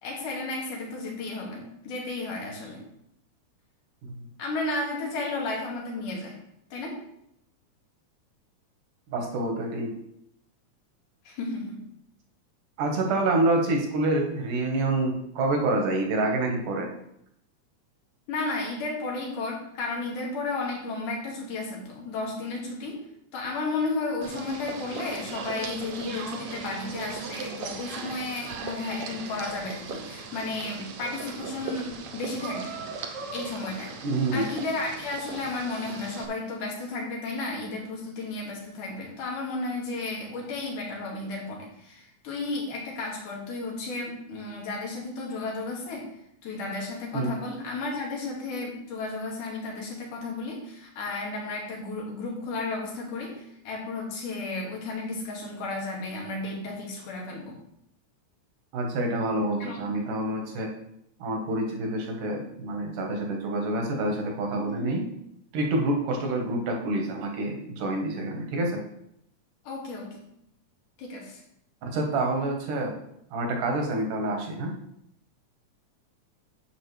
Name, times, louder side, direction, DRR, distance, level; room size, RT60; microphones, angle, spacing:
voice 1, 0.0-2.8 4.4-6.4 6.7-7.0 11.2-11.8 18.3-23.0 23.3-32.7 33.3-46.1 46.4-57.6 59.6-59.9 64.6-65.0 66.2-66.3 69.6-70.2 71.0-71.4, left 3 dB, 85° left, -2 dB, 3.5 m, -33 dB
voice 2, 9.1-9.9 12.8-16.9 34.0-34.5 47.1-47.3 58.7-60.7 61.2-65.0 65.5-68.8 71.8-72.9 73.3-74.7, right 2 dB, 85° right, 2 dB, 2.9 m, -27 dB
sound 1, 24.2-36.3, right 4 dB, 65° right, 1.6 m, -38 dB
10.0 x 7.6 x 3.3 m, 0.75 s
omnidirectional pair, 3.6 m